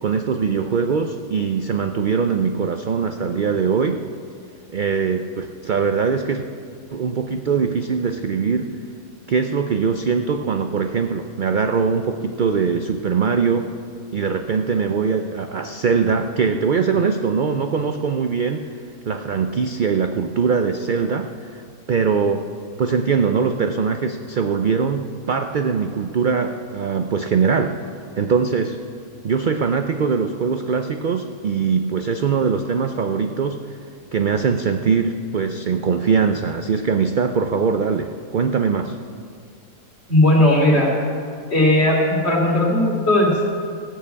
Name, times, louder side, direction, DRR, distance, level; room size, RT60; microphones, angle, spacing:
voice 1, 0.0-4.0 4.7-6.5 6.9-8.7 9.3-13.7 14.1-18.7 19.1-21.6 21.9-22.5 22.8-27.8 28.2-28.8 29.2-33.8 34.1-39.0, right 5 dB, 65° right, 7 dB, 0.4 m, -21 dB
voice 2, 40.1-40.9 41.5-43.4, left 1 dB, 45° left, -2 dB, 3.1 m, -16 dB
16.0 x 6.8 x 8.4 m, 2.4 s
omnidirectional pair, 1.6 m